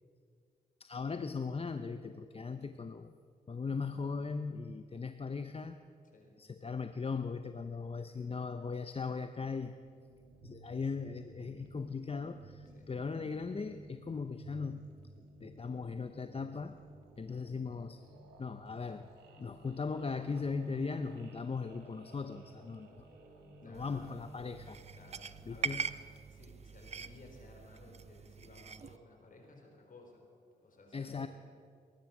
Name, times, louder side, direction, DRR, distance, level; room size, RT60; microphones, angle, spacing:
voice 1, 0.8-3.1 3.5-5.8 6.4-9.7 10.4-14.8 15.4-16.8 17.2-18.0 18.4-19.1 19.4-23.1 23.6-24.8 25.5-25.9 30.9-31.3, left 4 dB, 35° left, 9 dB, 0.7 m, -38 dB
sound 1, 9.8-25.7, right 2 dB, 85° right, 2.2 m, -56 dB
voice 2, 23.6-24.2 24.9-25.7 26.3-30.2 30.6-31.3, left 2 dB, 55° left, 1 dB, 4.3 m, -57 dB
sound 2, 23.7-29.0, right 6 dB, 40° right, 0.6 m, -43 dB
20.5 x 11.5 x 6.1 m, 2.3 s
supercardioid pair, 50°, 17 cm